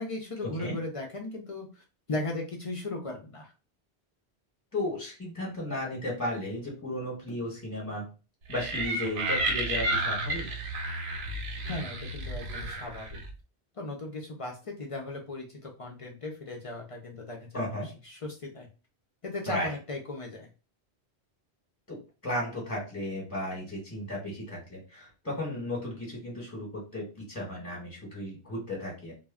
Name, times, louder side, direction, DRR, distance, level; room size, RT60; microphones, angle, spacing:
voice 1, 0.0-3.5 11.6-13.2 13.8-18.7 19.2-20.5, left 2 dB, 50° left, 1 dB, 0.4 m, -37 dB
voice 2, 4.7-8.1 8.5-10.5 17.5-17.9 19.5-19.7 21.9-29.1, left 1 dB, 15° left, -3 dB, 1.0 m, -34 dB
sound 1, 8.5-13.3, right 2 dB, 75° right, 0.9 m, -32 dB
2.2 x 2.0 x 3.4 m, 0.33 s
omnidirectional pair, 1.1 m